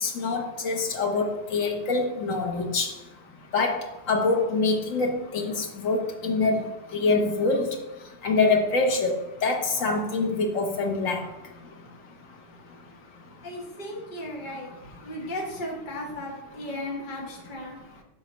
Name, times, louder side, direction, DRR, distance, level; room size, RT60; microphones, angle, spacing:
voice 1, 0.0-2.9 3.5-6.7 6.9-7.7 8.2-9.1 9.4-11.2, left 3 dB, 85° left, 2 dB, 1.4 m, -25 dB
voice 2, 13.4-14.7 15.0-17.8, left 1 dB, 40° left, -2 dB, 1.4 m, -35 dB
7.3 x 3.5 x 5.3 m, 0.95 s
omnidirectional pair, 1.3 m